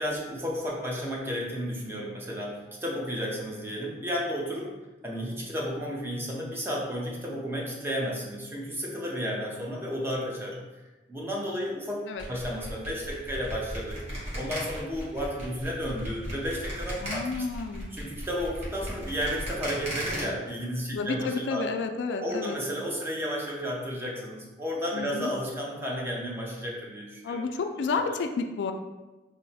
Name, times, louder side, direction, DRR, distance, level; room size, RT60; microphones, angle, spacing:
voice 1, 0.0-4.7 5.0-10.6 11.1-12.0 12.3-14.0 14.3-17.3 17.9-21.6 22.2-27.4 28.0-28.2, equal, 15° right, -3 dB, 0.5 m, -32 dB
sound 1, 12.2-20.2, equal, 40° right, 1.1 m, -37 dB
voice 2, 17.0-17.9 20.9-22.6 24.9-25.3 27.2-28.7, left 4 dB, 85° left, 5 dB, 0.3 m, -30 dB
3.1 x 2.1 x 4.0 m, 1.1 s
head